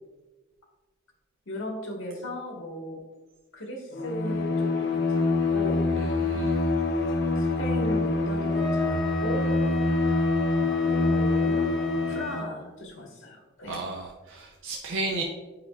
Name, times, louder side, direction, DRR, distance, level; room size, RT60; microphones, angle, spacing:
voice 1, 1.5-3.0 3.5-5.9 7.0-9.5 10.8-11.6 12.1-13.8 15.1-15.2, equal, 90° left, 1 dB, 1.5 m, -37 dB
Bowed string instrument, 3.9-12.5, left 3 dB, 55° left, 0.6 m, -25 dB
voice 2, 6.0-6.7 13.7-15.2, right 3 dB, 70° right, -1 dB, 0.6 m, -34 dB
Wind instrument woodwind instrument, 8.5-12.5, left 1 dB, ahead, 0.6 m, -37 dB
8.6 x 5.3 x 2.4 m, 1.2 s
head